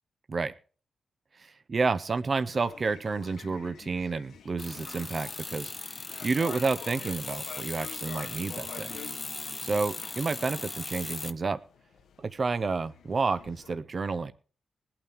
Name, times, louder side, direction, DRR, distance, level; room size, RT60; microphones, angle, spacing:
voice 1, 1.3-5.7 6.2-9.0 9.6-11.6 12.2-14.3, right 4 dB, 30° right, 12 dB, 0.7 m, -30 dB
sound 1, 2.4-13.7, left 7 dB, 85° left, 1.1 m, -48 dB
sound 2, 4.6-11.3, left 3 dB, 20° left, 0.8 m, -38 dB
21.5 x 8.7 x 3.5 m, 0.38 s
wide cardioid pair, 175°, 0 cm